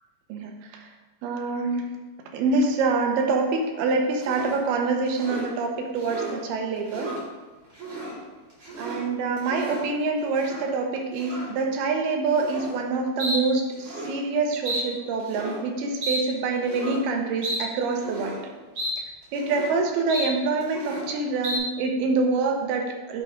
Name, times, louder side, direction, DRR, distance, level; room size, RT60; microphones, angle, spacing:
voice 1, 1.2-1.9 2.3-7.1 8.8-18.4 19.3-23.2, right 3 dB, 80° right, 3 dB, 2.7 m, -26 dB
sound 1, 4.2-4.6 5.1-5.5 5.9-6.4 6.8-7.2 7.7-8.2 8.5-9.0 9.4-9.9 10.3-10.6 11.2-11.5 12.3-12.7 13.2-13.4 13.7-14.1 14.6-14.8 15.2-15.6 16.0-16.2 16.6-17.0 17.4-17.6 18.0-18.4 18.7-18.9 19.2-19.7 20.1-20.3 20.6-21.1 21.4-21.6, right 1 dB, 40° right, 2.3 m, -32 dB
7.8 x 3.4 x 4.9 m, 1.2 s
omnidirectional pair, 4.5 m